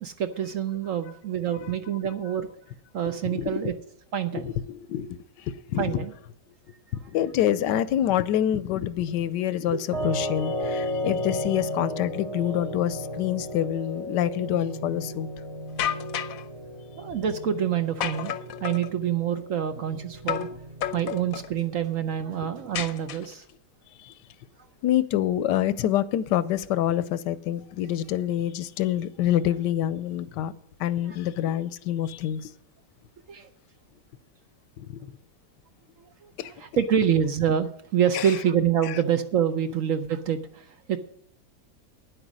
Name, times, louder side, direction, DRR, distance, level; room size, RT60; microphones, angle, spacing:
voice 1, 0.0-2.5 2.9-3.7 4.1-4.5 5.8-6.1 10.6-10.7 16.2-16.3 17.0-18.3 18.6-20.5 20.9-23.4 33.3-33.5 36.2-36.3 36.6-41.0, right 9 dB, 60° right, 0.9 m, -26 dB
voice 2, 3.1-3.7 4.3-6.1 7.1-15.3 24.0-24.1 24.8-30.5 30.8-32.5 34.8-35.0 36.4-36.5 38.1-38.3 38.8-38.9, left 11 dB, 85° left, 1.2 m, -27 dB
sound 1, 9.9-22.9, left 1 dB, 25° right, 1.0 m, -35 dB
sound 2, 15.8-16.4 18.0-18.9 20.3-20.6 20.8-21.5 22.7-23.5, left 10 dB, 65° left, 1.0 m, -31 dB
10.0 x 8.0 x 6.3 m
omnidirectional pair, 1.8 m